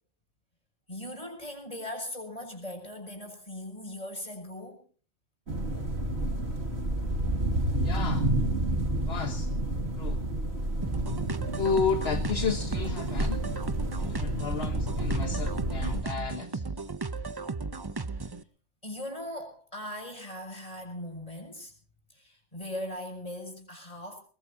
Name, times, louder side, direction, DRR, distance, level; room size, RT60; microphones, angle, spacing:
voice 1, 0.9-4.8 14.3-14.7 18.8-21.7 22.1-24.2, left 1 dB, 30° left, 3 dB, 6.9 m, -39 dB
sound 1, 5.5-16.0, right 1 dB, 60° right, 2.8 m, -30 dB
voice 2, 7.8-8.3 9.0-9.5 10.0-10.2 11.6-13.4 14.0-16.7, left 5 dB, 60° left, 6 dB, 1.6 m, -32 dB
sound 2, 10.8-18.4, right 4 dB, 25° right, 0.7 m, -35 dB
22.5 x 22.0 x 2.8 m, 0.40 s
omnidirectional pair, 1.2 m